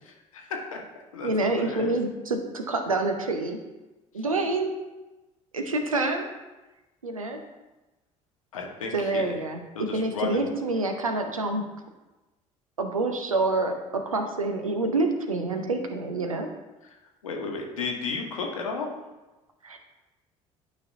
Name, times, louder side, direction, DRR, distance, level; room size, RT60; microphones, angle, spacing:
voice 1, 0.0-0.8 1.1-1.9 8.5-9.4 9.7-10.5 17.2-18.9, left 4 dB, 75° left, 1 dB, 1.1 m, -33 dB
voice 2, 1.2-3.6 4.1-4.7 5.5-6.3 7.0-7.4 8.9-11.6 12.8-16.5 19.6-19.8, right 2 dB, 85° right, 5 dB, 0.7 m, -27 dB
11.5 x 5.2 x 2.7 m, 1.1 s
figure-of-eight pair, 55°, 17 cm